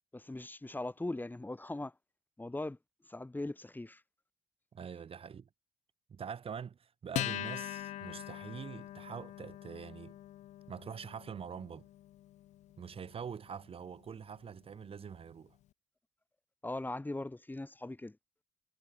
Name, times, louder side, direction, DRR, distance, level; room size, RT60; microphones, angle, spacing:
voice 1, 0.1-2.0 2.4-2.8 3.0-4.0 4.9-5.0 16.6-18.2, left 2 dB, 15° left, 3.5 m, -40 dB
voice 2, 4.7-5.5 6.1-10.2 10.7-11.9 12.8-15.6, right 7 dB, 50° right, 6.5 m, -44 dB
Acoustic guitar, 7.1-14.0, left 14 dB, 70° left, 3.8 m, -43 dB
hypercardioid pair, 55°, 12 cm